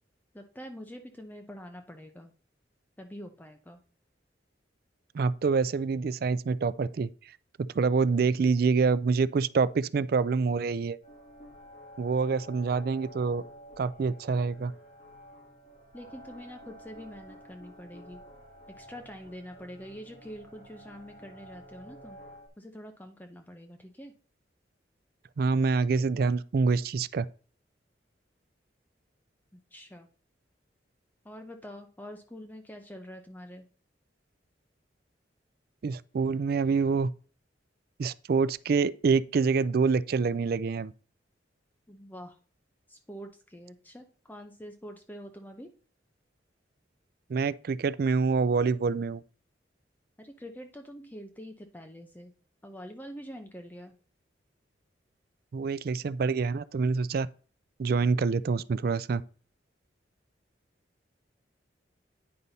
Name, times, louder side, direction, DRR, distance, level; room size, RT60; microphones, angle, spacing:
voice 1, 0.3-2.3 3.0-3.8 15.9-18.2 18.8-22.2 22.6-24.1 29.5-30.1 31.2-33.6 41.9-42.4 42.9-45.7 50.2-52.3 52.6-53.9, equal, 10° left, 0.6 m, -45 dB
voice 2, 5.1-7.1 7.7-11.0 12.0-13.4 13.8-14.7 25.4-27.3 35.8-37.1 38.0-40.9 47.3-49.2 55.5-57.3 57.8-59.2, right 4 dB, 55° right, 0.4 m, -26 dB
sound 1, 11.0-22.5, equal, 40° left, 3.9 m, -51 dB
9.7 x 5.4 x 4.0 m
head